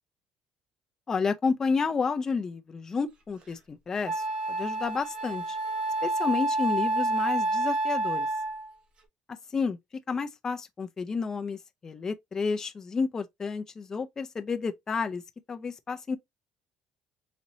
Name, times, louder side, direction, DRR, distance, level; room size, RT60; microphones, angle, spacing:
voice 1, 1.1-4.2 4.5-5.6 6.0-8.3 9.5-9.8 10.1-15.2 15.5-16.2, left 5 dB, 20° left, 0.4 m, -30 dB
Wind instrument woodwind instrument, 3.4-3.5 4.1-8.7, right 2 dB, 35° right, 1.0 m, -29 dB
4.1 x 2.8 x 2.6 m
cardioid pair, 160°, 3 cm